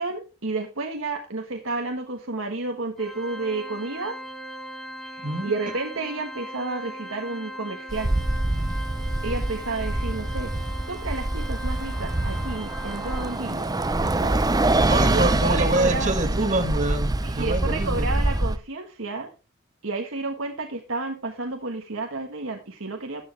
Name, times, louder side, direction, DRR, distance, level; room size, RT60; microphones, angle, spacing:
voice 1, 0.0-4.2 5.0-8.1 9.2-10.5 10.9-14.4 15.1-16.1 17.2-19.3 19.8-23.2, right 3 dB, 70° right, 4 dB, 1.5 m, -31 dB
Organ, 3.0-13.7, equal, ahead, 1.6 m, -39 dB
voice 2, 5.2-5.7 14.9-18.1, right 2 dB, 35° right, 7 dB, 1.5 m, -26 dB
Bus, 7.9-18.6, right 2 dB, 20° right, 0.7 m, -25 dB
14.0 x 9.6 x 3.4 m, 0.31 s
head